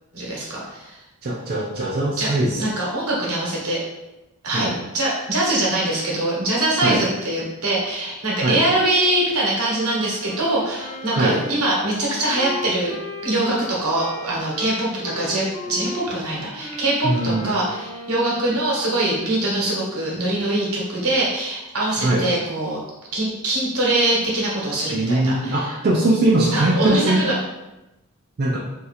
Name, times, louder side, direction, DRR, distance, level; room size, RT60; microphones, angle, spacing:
voice 1, 0.1-1.0 2.2-3.8 4.4-12.9 13.2-22.8 23.1-25.7 26.5-27.3, right 1 dB, 80° right, -4 dB, 1.2 m, -23 dB
voice 2, 1.2-2.6 4.5-4.8 6.8-7.0 8.4-8.6 11.1-11.4 17.0-17.5 22.0-22.3 24.9-27.3 28.4-28.6, right 2 dB, 45° right, -4 dB, 0.4 m, -21 dB
Wind instrument woodwind instrument, 10.2-18.9, left 2 dB, 85° left, 0.9 m, -36 dB
2.7 x 2.4 x 4.1 m, 0.98 s
head